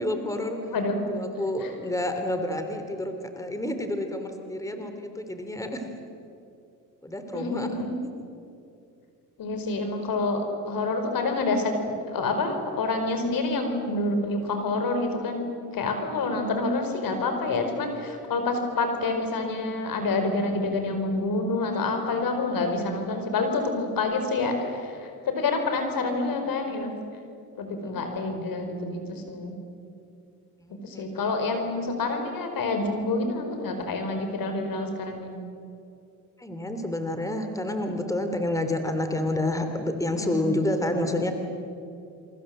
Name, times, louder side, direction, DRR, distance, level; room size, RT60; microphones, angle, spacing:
voice 1, 0.0-0.6 1.1-5.9 7.0-7.8 23.7-24.0 27.9-28.1 30.6-31.4 36.4-41.3, left 1 dB, 10° left, 6 dB, 3.1 m, -29 dB
voice 2, 7.3-7.9 9.4-11.7 12.1-15.5 15.7-24.8 25.2-26.9 27.6-29.5 30.8-35.3 40.2-40.5, left 3 dB, 70° left, 6 dB, 4.9 m, -27 dB
27.0 x 24.0 x 7.8 m, 2.6 s
cardioid pair, 80°, 36 cm